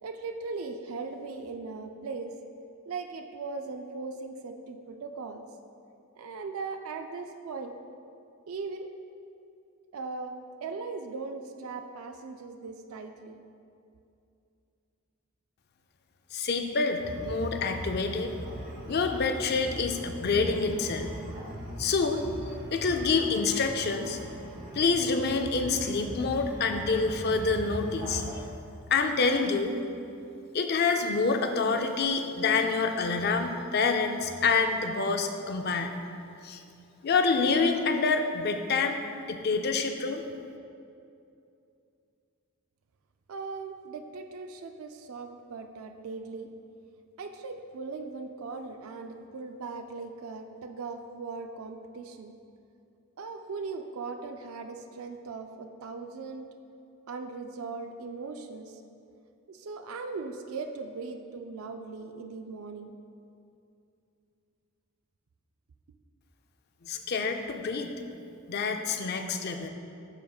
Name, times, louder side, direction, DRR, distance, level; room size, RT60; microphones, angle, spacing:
voice 1, 0.0-2.3 2.9-5.4 6.2-7.7 8.5-8.9 9.9-10.3 10.6-13.4 43.3-46.5 47.2-52.4 53.2-56.5 57.1-58.8 59.5-63.0, right 4 dB, 70° right, 6 dB, 0.4 m, -39 dB
voice 2, 16.3-18.3 18.9-21.2 21.8-22.2 22.7-24.2 24.7-28.2 28.9-29.7 30.5-35.9 36.4-36.6 37.0-39.0 39.3-40.2 66.8-67.9 68.5-69.7, left 4 dB, 45° left, 6 dB, 0.4 m, -27 dB
sound 1, 17.0-28.5, equal, 40° right, 0.8 m, -40 dB
12.5 x 5.0 x 2.3 m, 2.6 s
head